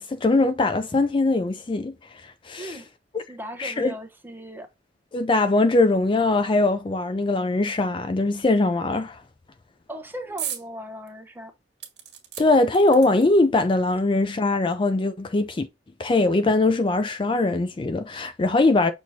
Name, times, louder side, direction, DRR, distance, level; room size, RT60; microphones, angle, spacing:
voice 1, 0.0-1.9 2.2-2.8 3.6-3.9 5.1-9.2 12.4-15.7 16.0-18.9, left 2 dB, 30° left, 0.4 m, -21 dB
voice 2, 2.6-2.9 3.3-4.7 9.9-11.5, equal, 10° right, 0.8 m, -37 dB
sound 1, 10.4-10.7 11.1-11.2 11.8-13.5 14.4-14.5 14.7-14.8, right 10 dB, 75° right, 1.4 m, -36 dB
6.0 x 3.0 x 2.7 m
head